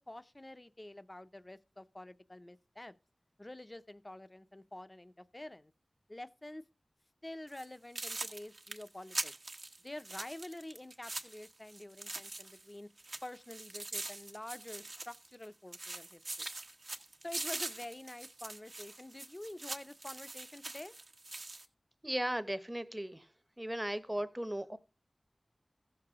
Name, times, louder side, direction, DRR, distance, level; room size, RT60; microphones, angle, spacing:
voice 1, 0.0-2.9 3.4-5.7 6.1-6.6 7.2-9.3 9.8-12.9 13.2-16.5 17.2-20.9, left 1 dB, 30° left, 0.6 m, -48 dB
sound 1, 7.5-7.7 8.0-12.7 13.0-15.5 15.7-21.7, right 2 dB, 65° right, 1.1 m, -43 dB
voice 2, 22.0-23.3 23.6-24.8, right 1 dB, 15° right, 0.8 m, -36 dB
15.5 x 6.8 x 3.6 m
wide cardioid pair, 70°, 0 cm